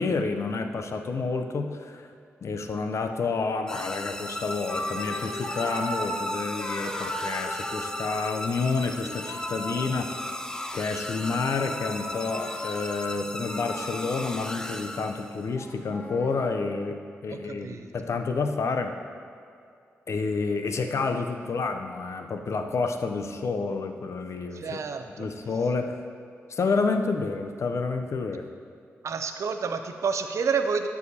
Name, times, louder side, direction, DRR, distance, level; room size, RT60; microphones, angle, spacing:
voice 1, 0.0-2.1 2.4-10.2 10.7-18.9 20.1-24.8 25.2-26.0 26.5-28.5, left 4 dB, 65° left, 6 dB, 0.6 m, -29 dB
sound 1, 3.7-15.5, left 1 dB, 10° left, 0.5 m, -36 dB
sound 2, 4.1-4.3 4.6-8.6 9.0-10.7 11.1-16.5, left 1 dB, 40° left, 1.1 m, -37 dB
voice 2, 17.5-17.9 24.5-25.3 29.0-30.9, right 5 dB, 70° right, 7 dB, 0.5 m, -29 dB
13.0 x 4.8 x 2.8 m, 2.5 s
cardioid pair, 55°, 5 cm